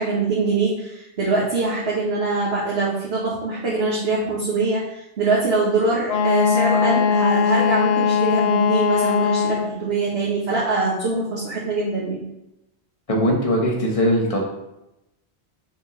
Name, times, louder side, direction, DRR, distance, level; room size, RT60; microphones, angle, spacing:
voice 1, 0.0-12.2, right 3 dB, 70° right, -7 dB, 1.7 m, -23 dB
Wind instrument woodwind instrument, 6.1-9.8, left 6 dB, 70° left, 0.9 m, -20 dB
voice 2, 13.1-14.4, equal, 30° left, -1 dB, 1.4 m, -20 dB
6.8 x 6.1 x 3.2 m, 0.87 s
omnidirectional pair, 1.1 m